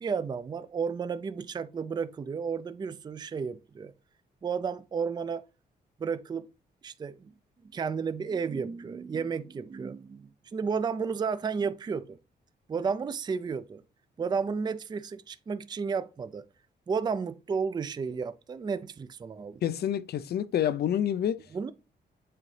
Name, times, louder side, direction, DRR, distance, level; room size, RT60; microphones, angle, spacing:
voice 1, 0.0-3.9 4.4-5.4 6.0-6.5 6.8-7.3 7.7-12.2 12.7-13.8 14.2-16.4 16.9-19.6 21.5-21.7, right 5 dB, 25° right, 0.3 m, -32 dB
voice 2, 19.6-21.4, left 10 dB, 65° left, 0.4 m, -28 dB
7.6 x 3.9 x 3.2 m
cardioid pair, 105°, 18 cm